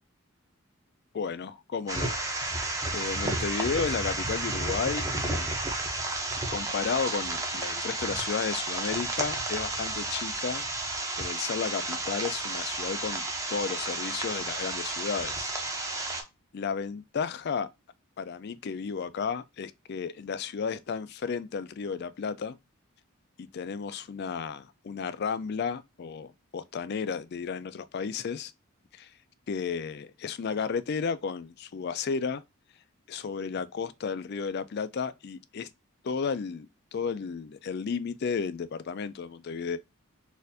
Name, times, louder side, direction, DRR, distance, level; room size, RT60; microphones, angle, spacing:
voice 1, 1.1-2.5 2.9-5.5 6.5-15.5 16.5-17.7 18.2-22.6 23.4-28.5 28.9-29.1 29.5-32.4 33.1-35.7 36.0-39.8, left 5 dB, 50° left, 0.3 m, -33 dB
sound 1, 1.9-16.2, right 2 dB, 15° right, 0.7 m, -32 dB
4.2 x 2.5 x 2.6 m
head